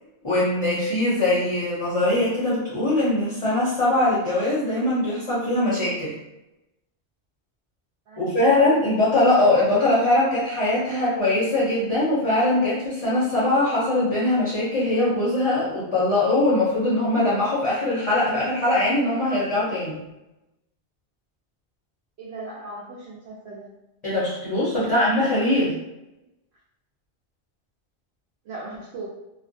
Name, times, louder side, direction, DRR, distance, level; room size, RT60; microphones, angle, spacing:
voice 1, 0.2-6.1 8.2-20.0 24.0-25.7, left 1 dB, 35° left, -8 dB, 0.6 m, -21 dB
voice 2, 8.1-8.8 22.2-23.8 24.8-25.1 28.4-29.1, right 2 dB, 70° right, -6 dB, 0.8 m, -38 dB
2.4 x 2.1 x 2.6 m, 0.94 s
omnidirectional pair, 1.2 m